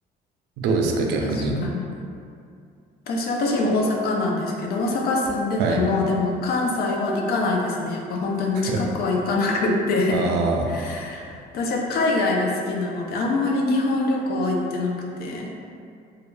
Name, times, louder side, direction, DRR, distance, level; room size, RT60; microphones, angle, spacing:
voice 1, 0.6-1.6 5.6-5.8 8.5-8.8 10.1-10.7, right 3 dB, 85° right, 1 dB, 0.4 m, -23 dB
voice 2, 1.2-1.8 3.1-10.2 10.7-15.5, left 2 dB, 65° left, 0 dB, 0.4 m, -24 dB
2.3 x 2.2 x 3.1 m, 2.4 s
cardioid pair, 110°, 17 cm